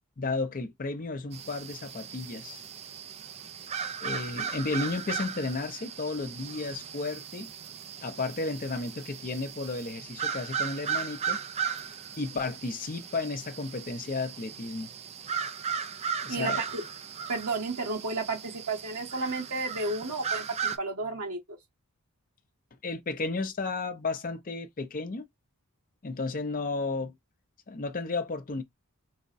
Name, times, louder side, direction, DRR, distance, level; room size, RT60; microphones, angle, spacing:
voice 1, 0.2-2.6 4.0-7.5 8.0-11.4 12.2-14.9 16.2-16.6 22.8-25.2 26.0-27.1 27.7-28.6, left 3 dB, 40° left, 0.6 m, -33 dB
sound 1, 1.3-20.8, right 7 dB, 30° right, 0.3 m, -37 dB
voice 2, 16.3-16.8 17.3-21.4, right 3 dB, 80° right, 1.5 m, -32 dB
4.7 x 2.2 x 2.5 m
head